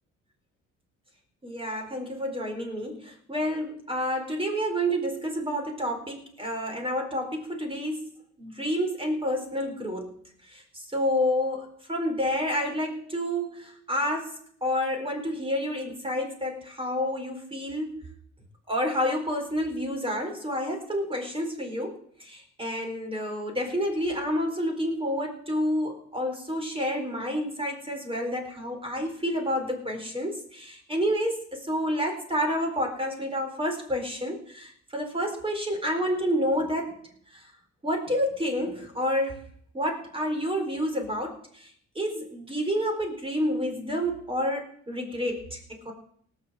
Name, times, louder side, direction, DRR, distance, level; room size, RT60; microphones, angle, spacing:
voice 1, 1.4-8.1 8.4-10.2 10.5-14.3 14.6-18.0 18.7-36.9 37.8-39.4 39.7-41.4 42.0-45.9, equal, 20° right, 3 dB, 4.2 m, -29 dB
18.0 x 6.9 x 7.5 m, 0.63 s
cardioid pair, 90°, 30 cm